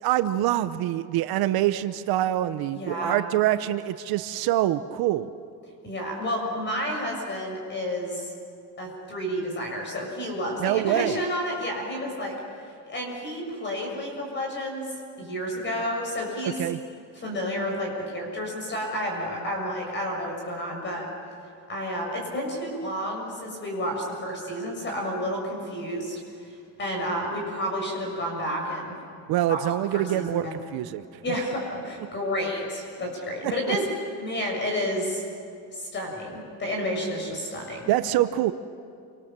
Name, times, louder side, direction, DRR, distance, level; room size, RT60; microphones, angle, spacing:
voice 1, 0.0-5.3 10.6-11.2 16.6-16.8 29.3-31.0 33.4-33.8 37.9-38.5, right 13 dB, 60° right, 11 dB, 0.8 m, -25 dB
voice 2, 2.7-3.2 5.8-8.3 8.8-12.3 12.9-14.9 15.2-16.6 17.2-21.1 21.7-29.0 29.5-29.6 29.9-30.6 31.2-33.9 34.2-35.2 35.7-37.9, equal, 25° left, 1 dB, 7.0 m, -30 dB
28.5 x 26.0 x 7.5 m, 2.4 s
cardioid pair, 175°, 42 cm